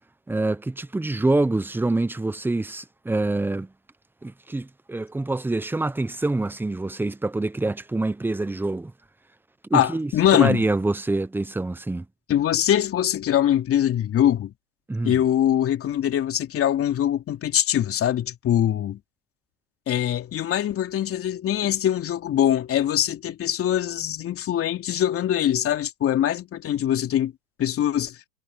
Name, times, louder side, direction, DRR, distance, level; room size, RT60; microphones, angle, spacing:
voice 1, 0.3-3.7 4.2-8.9 9.7-12.1 14.9-15.2, right 2 dB, 5° right, 1.0 m, -26 dB
voice 2, 9.7-10.6 12.3-14.5 15.0-19.0 19.9-27.3 27.6-28.2, left 11 dB, 30° left, 3.1 m, -23 dB
hypercardioid pair, 115°, 46 cm